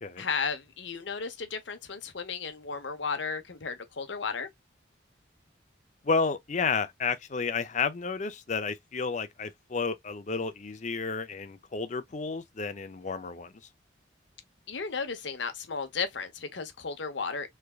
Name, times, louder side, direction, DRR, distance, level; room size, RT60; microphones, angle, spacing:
voice 1, 0.2-4.5 14.7-17.5, left 5 dB, 70° left, 0.8 m, -34 dB
voice 2, 6.0-13.5, left 5 dB, 40° left, 0.5 m, -31 dB
3.5 x 3.3 x 2.3 m
head